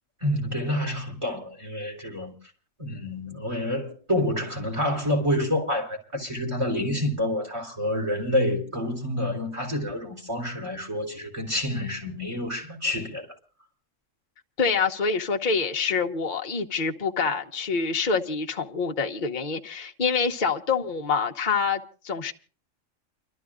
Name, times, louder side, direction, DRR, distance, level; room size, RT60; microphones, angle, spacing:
voice 1, 0.2-2.3 2.8-13.3, left 1 dB, 20° right, 3.9 m, -28 dB
voice 2, 14.6-22.3, left 5 dB, 40° left, 1.1 m, -26 dB
29.5 x 13.0 x 2.5 m
omnidirectional pair, 1.4 m